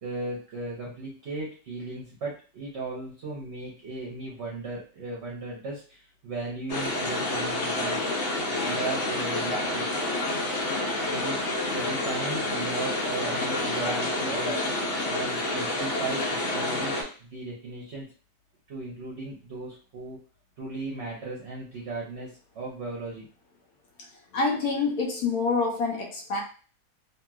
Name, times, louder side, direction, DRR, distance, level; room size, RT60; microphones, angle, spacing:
voice 1, 0.0-8.0 8.5-9.9 11.0-14.6 15.1-18.1 18.7-20.2 20.6-23.3, right 2 dB, 55° right, -2 dB, 0.9 m, -36 dB
sound 1, 6.7-17.0, left 2 dB, 55° left, 1.0 m, -28 dB
voice 2, 24.3-26.4, left 4 dB, 75° left, -1 dB, 1.2 m, -26 dB
2.9 x 2.8 x 2.3 m, 0.39 s
omnidirectional pair, 1.7 m